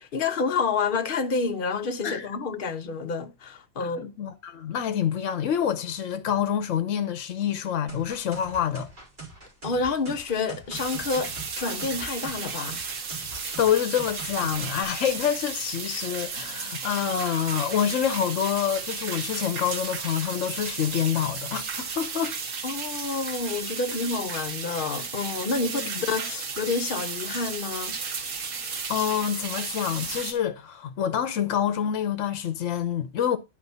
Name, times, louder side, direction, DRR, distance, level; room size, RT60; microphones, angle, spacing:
voice 1, 0.0-4.1 9.6-12.8 22.6-25.8 26.1-28.0, left 4 dB, 50° left, 0.9 m, -29 dB
voice 2, 3.8-8.9 13.6-22.3 25.6-26.0 28.9-33.4, left 9 dB, 70° left, 1.1 m, -27 dB
sound 1, 7.9-14.8, right 3 dB, 35° right, 2.7 m, -42 dB
sound 2, 10.7-30.3, right 5 dB, 75° right, 1.5 m, -34 dB
11.0 x 4.6 x 4.1 m
omnidirectional pair, 1.4 m